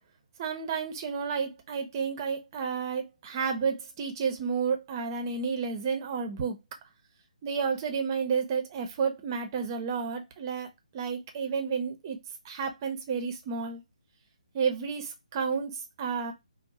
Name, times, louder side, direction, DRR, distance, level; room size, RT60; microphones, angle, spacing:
voice 1, 0.4-6.6 7.4-12.2 12.4-13.8 14.5-16.3, right 6 dB, 30° right, 0.6 m, -31 dB
2.6 x 2.0 x 3.9 m
figure-of-eight pair, 140°, 4 cm